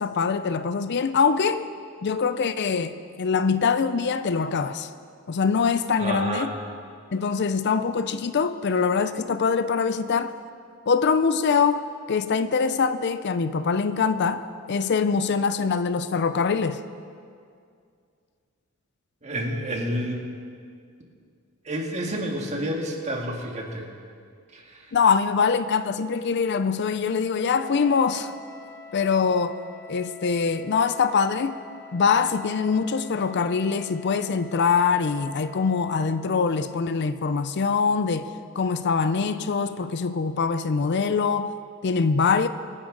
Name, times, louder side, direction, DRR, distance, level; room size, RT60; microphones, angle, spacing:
voice 1, 0.0-1.7 2.0-4.9 5.3-6.5 7.1-10.3 10.9-14.4 14.7-16.8 24.9-28.3 28.9-29.6 29.9-31.6 31.9-38.3 38.6-41.5 41.8-42.5, left 5 dB, 55° left, 11 dB, 0.5 m, -23 dB
voice 2, 6.0-6.5 19.2-20.3 21.7-23.9 24.5-24.8, right 1 dB, 35° right, 1 dB, 1.8 m, -29 dB
Wind instrument woodwind instrument, 27.3-36.2, left 5 dB, 20° left, 3.1 m, -46 dB
25.0 x 10.0 x 3.9 m, 2.3 s
head